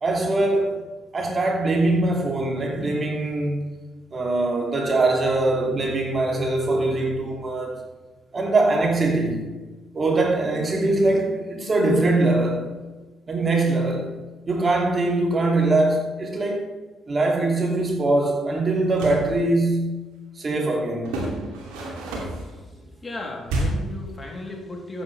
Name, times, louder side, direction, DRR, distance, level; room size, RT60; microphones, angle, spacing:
voice 1, 0.0-0.8 1.1-3.6 4.1-7.7 8.3-9.5 9.9-12.6 13.3-14.1 14.5-16.7 17.1-20.0 20.4-21.2, right 2 dB, 40° right, 2.7 m, -22 dB
sound 1, 18.8-19.3 21.0-22.5 23.5-24.0, right 1 dB, 80° right, 2.6 m, -29 dB
voice 2, 22.5-25.0, left 2 dB, 30° left, 3.2 m, -36 dB
14.5 x 8.5 x 3.4 m
hypercardioid pair, 50°, 0 cm